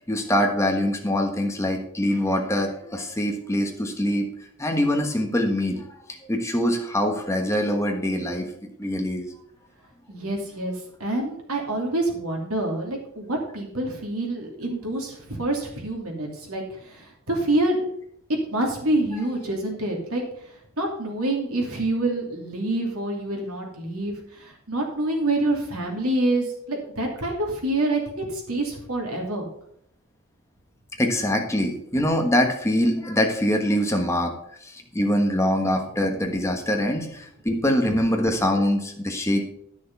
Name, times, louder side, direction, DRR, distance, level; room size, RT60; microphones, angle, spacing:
voice 1, 0.0-4.3 4.6-8.5 8.8-9.3 31.0-34.3 34.6-39.5, left 1 dB, 15° left, 3 dB, 1.3 m, -24 dB
voice 2, 10.1-17.9 18.5-20.2 20.8-29.5, right 1 dB, 80° right, 1 dB, 2.8 m, -27 dB
10.5 x 6.5 x 5.4 m, 0.68 s
head